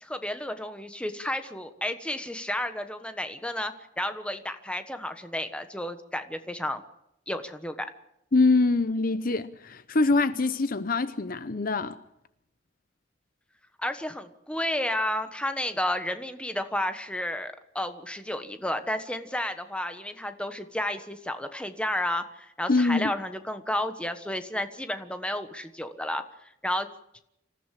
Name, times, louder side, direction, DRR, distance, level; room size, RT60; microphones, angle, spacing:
voice 1, 0.0-6.8 7.3-7.9 13.8-26.2 26.6-26.9, left 1 dB, 5° left, 1.3 m, -32 dB
voice 2, 8.3-12.0 22.7-23.1, left 3 dB, 50° left, 0.8 m, -24 dB
26.0 x 14.5 x 7.6 m
head